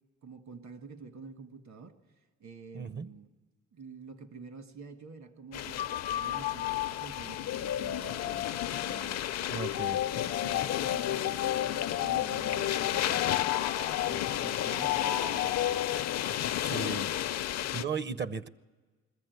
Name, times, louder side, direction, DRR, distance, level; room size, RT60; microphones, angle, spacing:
voice 1, 0.2-1.9 2.4-3.3 3.7-9.6 10.2-13.7 14.1-16.3, right 5 dB, 65° right, 8 dB, 1.7 m, -48 dB
voice 2, 2.7-3.1 9.5-10.0 16.6-17.1 17.7-18.5, right 5 dB, 35° right, 16 dB, 0.6 m, -35 dB
sound 1, 5.5-17.8, left 12 dB, 60° left, 0.5 m, -33 dB
sound 2, 5.8-16.5, left 12 dB, 90° left, 0.7 m, -33 dB
21.0 x 14.5 x 9.3 m, 1.4 s
cardioid pair, 90°, 30 cm